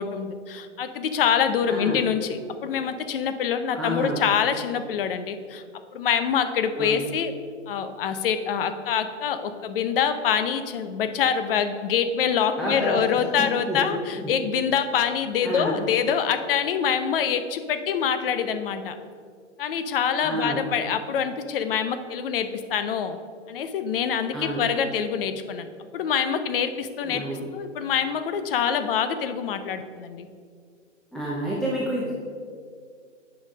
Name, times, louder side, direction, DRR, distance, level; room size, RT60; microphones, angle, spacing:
voice 1, 0.0-5.6 5.9-7.3 7.7-18.9 19.6-23.2 23.5-27.2 27.5-30.3, left 7 dB, 50° left, 10 dB, 0.7 m, -25 dB
voice 2, 1.7-2.0 3.7-4.2 6.7-7.0 12.6-13.0 13.4-13.9 14.2-14.4 15.4-15.8 20.2-20.6 24.3-24.6 27.0-27.4 31.1-32.1, equal, ahead, -6 dB, 0.6 m, -29 dB
8.7 x 5.5 x 5.1 m, 2.1 s
hypercardioid pair, 140°, 37 cm